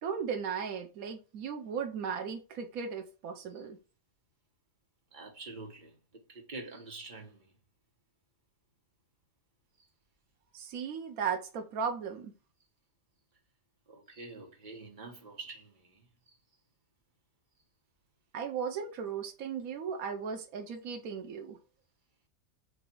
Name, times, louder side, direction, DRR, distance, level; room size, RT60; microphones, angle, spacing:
voice 1, 0.0-3.8 10.5-12.3 18.3-21.6, right 6 dB, 80° right, 1.3 m, -36 dB
voice 2, 5.1-5.9 6.3-7.5 13.9-16.0, right 3 dB, 35° right, 1.5 m, -46 dB
7.9 x 2.8 x 4.6 m
omnidirectional pair, 1.5 m